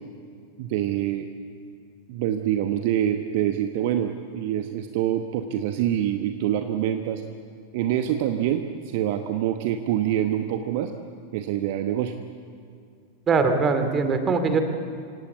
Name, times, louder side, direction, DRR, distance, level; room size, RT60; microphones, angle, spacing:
voice 1, 0.6-1.3 2.1-7.2 7.7-10.9 11.3-12.1, right 11 dB, 50° right, 7 dB, 1.0 m, -25 dB
voice 2, 13.3-14.6, right 4 dB, 25° right, 7 dB, 2.4 m, -21 dB
26.0 x 17.5 x 8.2 m, 2.3 s
figure-of-eight pair, 90°, 0 cm